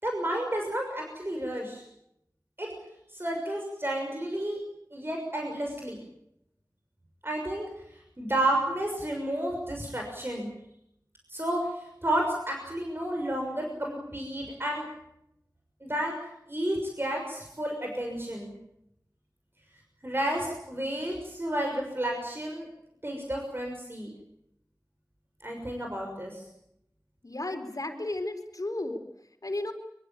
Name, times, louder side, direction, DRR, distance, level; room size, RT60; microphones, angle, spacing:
voice 1, 0.0-1.8 2.6-2.7 3.1-4.6 4.9-6.0 7.2-7.7 8.2-10.5 11.3-14.9 15.8-16.2 16.5-18.5 20.0-22.7 23.0-24.1 25.4-26.4, right 1 dB, 35° right, 1 dB, 6.3 m, -31 dB
voice 2, 27.2-29.0 29.4-29.7, left 2 dB, 60° left, 5 dB, 4.2 m, -33 dB
24.5 x 23.0 x 8.9 m, 0.81 s
wide cardioid pair, 50°, 7 cm